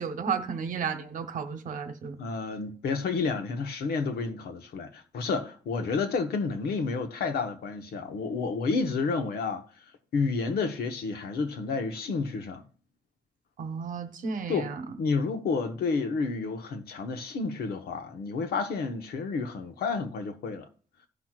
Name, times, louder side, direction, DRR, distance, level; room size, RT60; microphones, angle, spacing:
voice 1, 0.0-2.2 13.6-14.8, right 6 dB, 55° right, 1.1 m, -33 dB
voice 2, 2.2-9.6 10.1-12.6 14.5-14.7 15.0-20.7, left 4 dB, 85° left, 1.1 m, -30 dB
17.0 x 6.0 x 2.4 m
wide cardioid pair, 175°, 16 cm